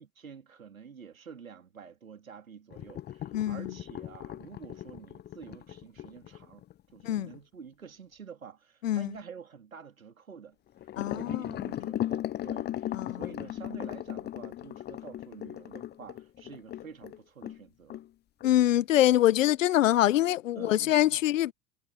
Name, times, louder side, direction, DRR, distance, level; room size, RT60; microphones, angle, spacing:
voice 1, 0.0-6.6 6.9-10.6 11.1-18.0 20.5-21.2, right 6 dB, 85° right, 3.0 m, -48 dB
sound 1, 2.7-7.4 10.8-17.6 17.9-18.1 18.4-18.5 18.9-19.0, left 12 dB, 25° left, 0.7 m, -37 dB
voice 2, 3.3-3.7 7.0-7.3 8.8-9.1 11.0-11.6 12.9-13.2 18.4-21.5, left 13 dB, 70° left, 1.1 m, -24 dB
figure-of-eight pair, 75°, 40 cm